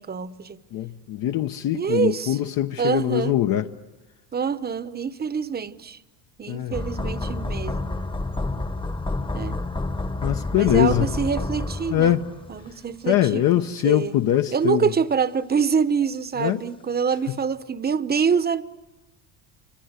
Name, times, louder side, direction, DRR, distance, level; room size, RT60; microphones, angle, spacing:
voice 1, 0.0-0.6 1.7-2.4 2.8-3.3 4.3-6.0 6.4-8.0 9.3-9.6 10.5-12.2 12.5-14.1 14.5-18.6, right 6 dB, 20° right, 1.0 m, -25 dB
voice 2, 0.7-3.7 6.5-6.8 10.2-11.1 11.9-12.2 13.1-14.9 16.4-16.6, left 12 dB, 50° left, 1.1 m, -22 dB
sound 1, 6.7-12.8 13.1-13.2, left 2 dB, 10° left, 1.2 m, -29 dB
28.5 x 26.0 x 8.2 m
supercardioid pair, 115°, 43 cm